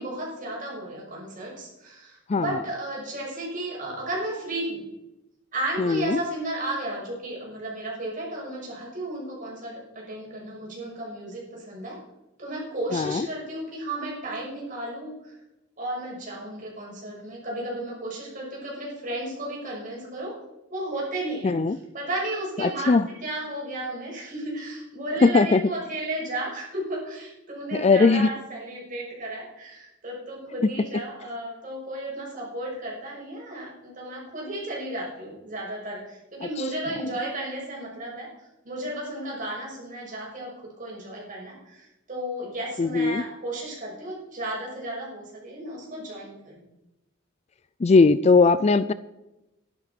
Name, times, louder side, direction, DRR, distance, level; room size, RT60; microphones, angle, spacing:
voice 1, 0.0-4.8 5.5-12.0 12.4-15.3 15.8-20.4 20.7-21.5 21.9-38.3 38.6-46.6, right 1 dB, 40° right, -3 dB, 6.1 m, -34 dB
voice 2, 5.8-6.2 12.9-13.3 21.4-21.8 22.6-23.1 25.2-25.6 27.7-28.3 30.6-30.7 36.6-36.7 42.8-43.2 47.8-48.9, left 4 dB, 35° left, 16 dB, 0.4 m, -19 dB
12.5 x 11.5 x 5.2 m, 0.94 s
head